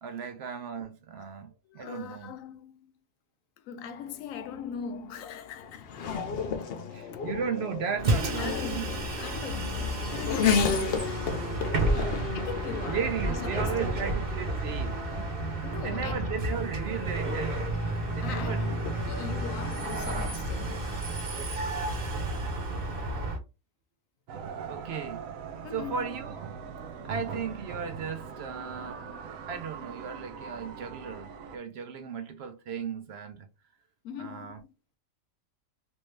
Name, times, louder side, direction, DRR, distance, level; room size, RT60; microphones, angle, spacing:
voice 1, 0.0-2.4 6.9-8.9 11.8-12.4 12.9-15.3 15.8-18.8 24.7-25.3 25.7-26.4 27.0-29.0 29.5-33.5 34.2-34.6, right 6 dB, 65° right, 0.7 m, -36 dB
voice 2, 1.7-2.9 3.6-5.9 6.6-6.8 7.1-7.2 8.1-11.3 12.3-14.1 15.6-16.3 18.2-21.1 25.6-26.1 34.0-34.7, left 8 dB, 85° left, 1.0 m, -40 dB
Race car auto racing / Accelerating revving vroom, 4.0-20.3, left 6 dB, 60° left, 0.7 m, -35 dB
Bus, 8.0-23.4, right 2 dB, 45° right, 1.1 m, -31 dB
sound 1, 24.3-31.6, right 6 dB, 90° right, 1.0 m, -41 dB
3.1 x 2.7 x 3.1 m
omnidirectional pair, 1.4 m